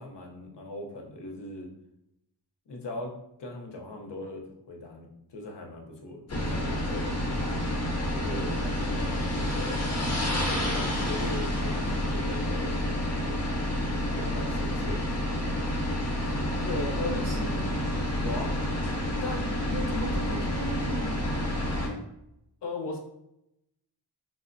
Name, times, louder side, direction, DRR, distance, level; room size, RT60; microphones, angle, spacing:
voice 1, 0.0-1.7 2.7-3.1 3.4-7.3 8.1-9.7 10.5-12.8 13.2-13.5 14.1-15.2 16.6-17.4 18.2-18.6 19.2-19.5 22.6-23.0, left 2 dB, 75° left, 2 dB, 0.7 m, -38 dB
sound 1, 6.3-21.9, left 1 dB, 35° left, 0.8 m, -29 dB
voice 2, 16.5-17.8 19.7-21.3, equal, 40° right, 1 dB, 0.6 m, -37 dB
4.6 x 2.0 x 2.5 m, 0.82 s
wide cardioid pair, 90°, 42 cm